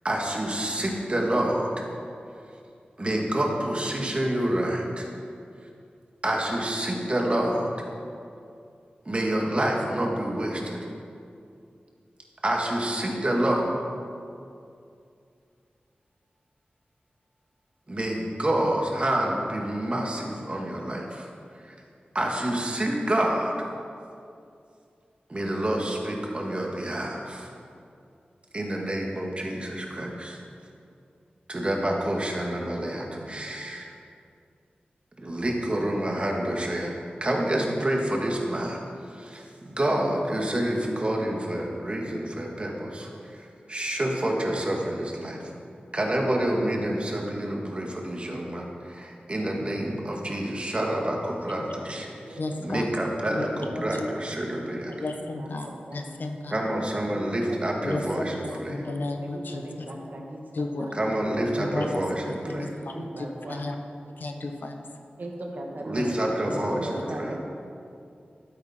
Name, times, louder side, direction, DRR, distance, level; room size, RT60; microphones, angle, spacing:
voice 1, 0.0-1.9 3.0-5.1 6.2-7.7 9.1-10.8 12.4-13.7 17.9-21.3 21.6-21.8 22.1-23.7 25.3-27.5 28.5-30.4 31.5-33.9 35.2-36.9 37.2-38.8 39.1-45.5 45.9-54.9 56.5-58.8 61.0-62.7 65.8-67.4, right 1 dB, 35° right, 0 dB, 1.8 m, -28 dB
voice 2, 51.6-52.0 52.4-52.9 53.3-54.1 55.0-56.7 57.8-59.9 60.5-60.9 61.6-63.8 64.2-64.9 65.9-66.0 66.3-66.6, left 2 dB, 75° left, 4 dB, 1.0 m, -34 dB
voice 3, 55.3-56.2 57.1-58.9 59.2-60.4 60.7-63.7 65.2-65.3 65.6-66.1 66.4-67.4, right 1 dB, 60° right, 0 dB, 1.6 m, -39 dB
12.5 x 9.1 x 4.4 m, 2.5 s
wide cardioid pair, 75°, 3 cm